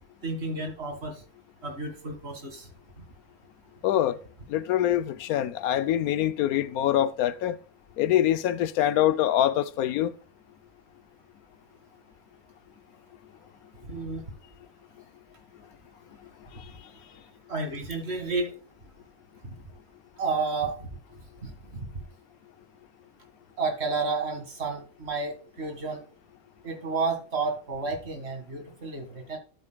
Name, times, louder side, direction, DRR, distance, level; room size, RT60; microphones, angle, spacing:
voice 1, 0.2-1.2 1.6-2.7 3.0-3.1 13.8-14.2 17.1-17.2 17.5-18.5 19.4-19.5 20.2-20.9 21.4-22.0 23.6-26.0 26.6-29.4, right 3 dB, 45° right, 2.2 m, -31 dB
voice 2, 3.8-4.2 4.5-7.6 8.0-10.1, left 12 dB, 85° left, 1.1 m, -24 dB
12.0 x 8.4 x 2.3 m
omnidirectional pair, 1.5 m